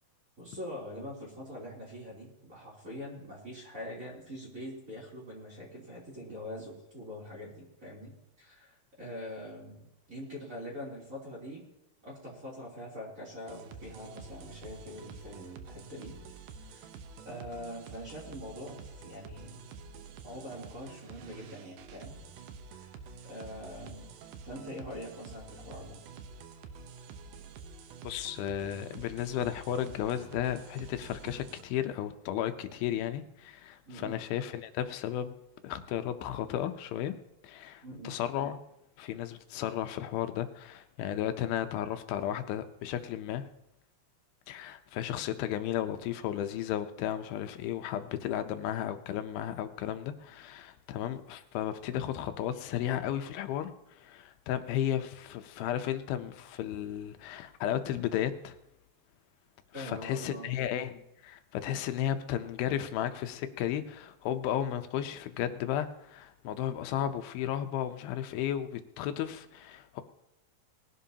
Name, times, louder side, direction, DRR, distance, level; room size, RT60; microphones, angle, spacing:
voice 1, 0.4-11.6 12.0-16.2 16.6-16.9 17.2-19.6 20.2-22.2 22.8-22.9 23.2-24.2 24.4-26.0 33.8-34.2 37.8-38.2 59.7-60.6, equal, 20° right, 3.3 m, -44 dB
sound 1, 13.5-31.6, right 5 dB, 70° right, 2.3 m, -48 dB
voice 2, 28.0-35.4 35.6-37.1 37.4-38.6 39.0-43.5 44.5-53.7 54.0-58.6 59.8-70.0, left 11 dB, 85° left, 2.6 m, -34 dB
20.5 x 11.5 x 2.8 m
omnidirectional pair, 4.2 m